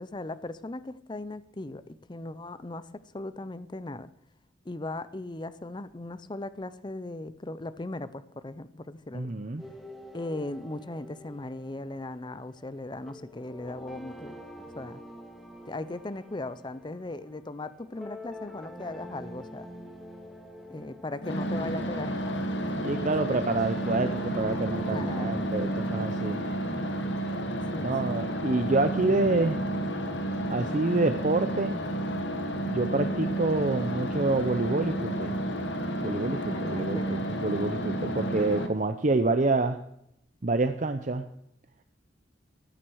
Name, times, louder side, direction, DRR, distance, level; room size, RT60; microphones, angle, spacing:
voice 1, 0.0-4.1 4.6-9.3 10.1-14.3 14.8-15.0 15.7-19.7 20.7-22.4 22.6-23.4 24.9-25.3 27.7-27.9 36.5-37.3, left 2 dB, 25° left, 15 dB, 0.6 m, -38 dB
voice 2, 9.1-9.6 22.8-26.4 27.8-29.6 30.5-31.8 32.6-35.4 36.0-39.8 40.4-41.2, right 2 dB, 40° right, 9 dB, 0.7 m, -27 dB
sound 1, 9.6-27.4, equal, ahead, 1.7 m, -46 dB
sound 2, 21.2-38.7, right 1 dB, 70° left, 1.7 m, -31 dB
14.0 x 9.4 x 6.3 m, 0.78 s
head